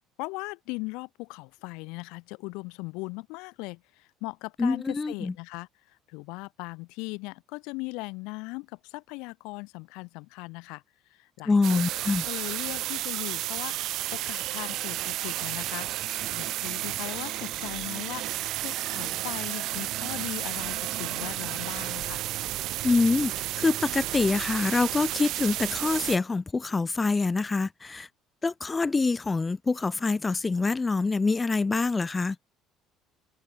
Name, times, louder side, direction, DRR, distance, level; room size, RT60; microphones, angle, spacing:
voice 1, 0.2-10.8 11.1-18.3 18.6-22.2, left 27 dB, 80° left, 4.4 m, -39 dB
voice 2, 4.6-5.3 11.5-12.2 22.8-28.1 28.4-32.4, left 3 dB, 20° left, 0.5 m, -25 dB
sound 1, 11.6-26.2, right 15 dB, 65° right, 0.7 m, -32 dB
supercardioid pair, 95°, 0 cm